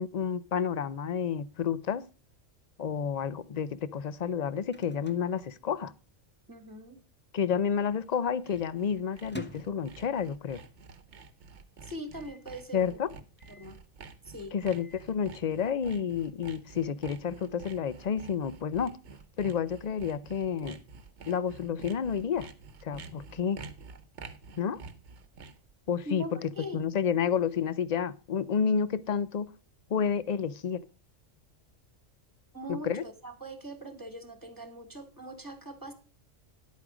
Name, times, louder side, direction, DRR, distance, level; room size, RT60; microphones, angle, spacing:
voice 1, 0.0-2.0 2.8-5.9 7.3-10.6 12.7-13.1 14.5-18.9 19.4-20.8 21.3-22.5 22.8-23.6 24.6-24.8 25.9-29.5 29.9-30.8 32.7-33.0, left 7 dB, 55° left, 17 dB, 0.4 m, -30 dB
Microwave oven, 4.7-6.3 6.5-6.6 6.9-7.4 7.9-10.6 11.0-11.1 11.3-11.4 12.1-12.5 13.4-13.8 14.5-15.1, right 1 dB, 10° left, 0.6 m, -49 dB
voice 2, 6.5-7.0 11.8-13.0 13.5-13.8 14.2-14.6 26.1-26.8 32.5-35.9, equal, 15° right, 8 dB, 1.7 m, -41 dB
Sawing, 7.9-25.7, right 4 dB, 60° right, 1.2 m, -49 dB
10.5 x 8.5 x 4.9 m, 0.34 s
omnidirectional pair, 1.4 m